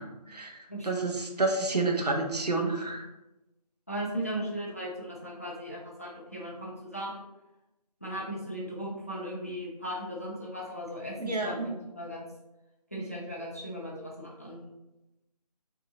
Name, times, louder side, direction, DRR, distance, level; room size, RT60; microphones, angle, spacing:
voice 1, 0.0-0.6 0.8-3.0 11.2-11.7, right 3 dB, 70° right, 2 dB, 0.8 m, -29 dB
voice 2, 0.7-1.1 3.9-7.2 8.0-12.2 12.9-14.6, equal, 20° left, -4 dB, 0.4 m, -37 dB
3.1 x 2.7 x 3.9 m, 0.97 s
figure-of-eight pair, 160°, 21 cm